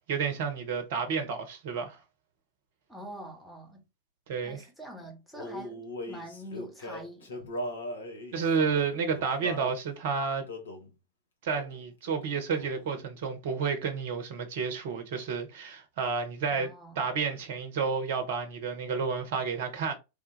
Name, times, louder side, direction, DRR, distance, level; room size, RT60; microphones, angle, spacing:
voice 1, 0.1-2.0 4.3-4.6 8.3-10.5 11.4-16.7 17.0-20.0, right 5 dB, 55° right, 0.7 m, -30 dB
voice 2, 2.9-3.8 4.4-7.4 16.5-17.1, equal, 5° left, 1.1 m, -45 dB
Male singing, 5.3-9.7 10.5-10.9 11.5-11.8 12.1-13.0, left 1 dB, 70° left, 0.9 m, -40 dB
3.5 x 2.3 x 3.1 m
figure-of-eight pair, 90°, 0 cm